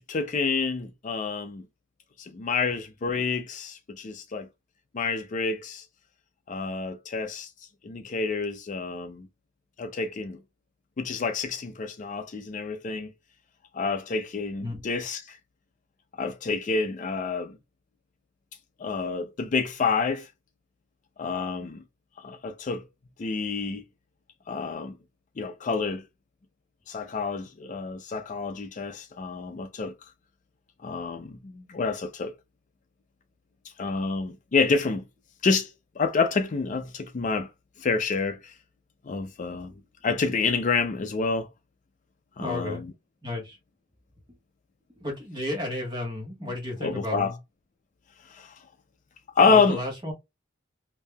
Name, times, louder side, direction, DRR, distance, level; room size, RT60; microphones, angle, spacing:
voice 1, 0.0-1.6 2.2-4.5 4.9-5.8 6.5-7.5 7.8-9.3 9.8-10.4 11.0-13.1 13.7-15.4 16.2-17.6 18.8-20.3 21.2-21.8 22.2-22.8 23.2-23.8 24.5-24.9 25.4-26.1 26.9-29.9 30.8-32.3 33.8-35.0 35.4-37.5 37.8-38.5 39.1-39.7 40.0-41.5 42.4-42.9 46.8-47.3 48.3-48.5 49.4-49.8, left 4 dB, 40° left, 0.4 m, -28 dB
voice 2, 42.4-42.8 43.2-43.6 44.3-44.4 45.0-47.4 49.5-50.1, left 1 dB, 20° right, 1.2 m, -33 dB
5.2 x 2.7 x 2.2 m
head